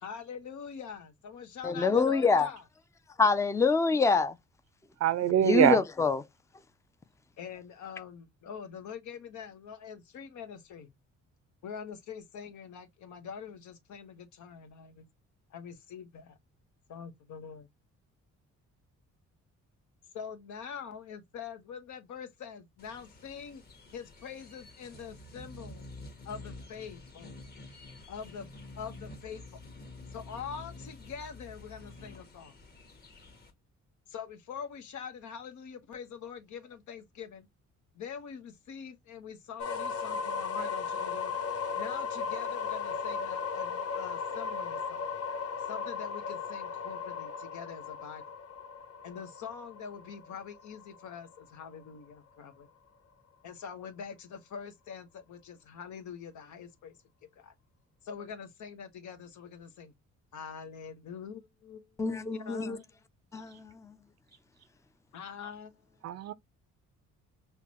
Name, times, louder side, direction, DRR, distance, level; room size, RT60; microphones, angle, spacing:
voice 1, 0.0-2.6 7.4-10.9 11.6-15.1 15.5-16.4 16.9-17.7 20.1-23.6 23.9-25.9 26.2-27.3 28.1-28.5 28.8-29.6 30.1-32.5 34.1-37.5 37.9-41.3 41.7-45.1 45.7-48.2 49.0-52.7 53.4-57.0 57.4-57.5 58.0-59.9 60.3-62.0 62.4-62.8 65.1-65.7, left 7 dB, 75° left, 1.1 m, -44 dB
voice 2, 1.6-2.5 3.2-4.4 5.4-6.2 62.0-62.8 63.3-64.0, left 4 dB, 10° left, 0.4 m, -26 dB
voice 3, 5.0-5.8 66.0-66.3, right 11 dB, 60° right, 0.5 m, -24 dB
sound 1, 22.8-33.5, left 2 dB, 30° left, 1.3 m, -49 dB
sound 2, 39.6-51.4, left 5 dB, 55° left, 0.8 m, -36 dB
5.7 x 2.2 x 2.9 m
cardioid pair, 90°, 30 cm